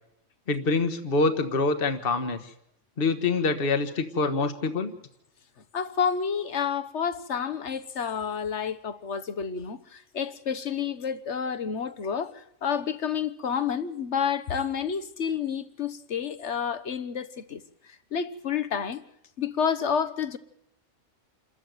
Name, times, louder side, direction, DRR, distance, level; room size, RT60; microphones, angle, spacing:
voice 1, 0.5-2.5 3.0-4.9, left 3 dB, 50° left, 1.5 m, -25 dB
voice 2, 5.7-19.0 19.4-20.4, left 7 dB, 65° left, 1.5 m, -30 dB
28.0 x 14.0 x 9.4 m
omnidirectional pair, 1.3 m